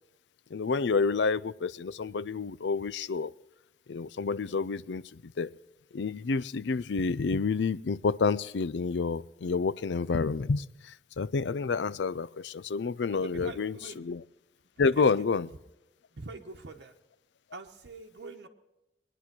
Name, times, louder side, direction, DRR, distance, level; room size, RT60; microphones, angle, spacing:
voice 1, 0.5-3.3 3.9-5.5 5.9-14.2 14.8-15.5, left 4 dB, 75° left, 18 dB, 0.5 m, -29 dB
voice 2, 13.1-14.1 14.9-15.0 16.1-16.9 17.5-18.5, right 3 dB, 75° right, 2 dB, 1.0 m, -43 dB
22.0 x 10.0 x 6.0 m, 0.98 s
head